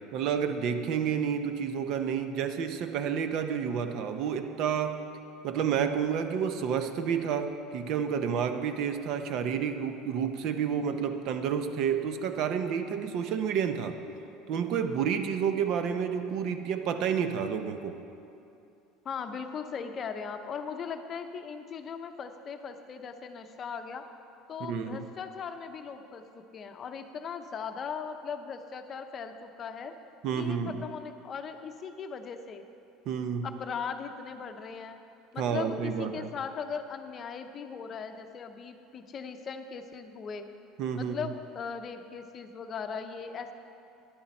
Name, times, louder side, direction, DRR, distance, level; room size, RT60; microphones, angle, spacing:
voice 1, 0.1-5.0 5.4-14.0 14.5-18.0 24.6-25.1 30.2-30.8 33.1-33.5 35.4-36.3 40.8-41.2, right 7 dB, 55° right, 8 dB, 0.7 m, -30 dB
voice 2, 19.0-24.1 24.5-30.0 30.4-32.6 33.4-35.0 35.3-40.5 41.0-43.5, left 6 dB, 35° left, 7 dB, 0.7 m, -39 dB
11.0 x 10.5 x 4.3 m, 2.7 s
cardioid pair, 135°, 0 cm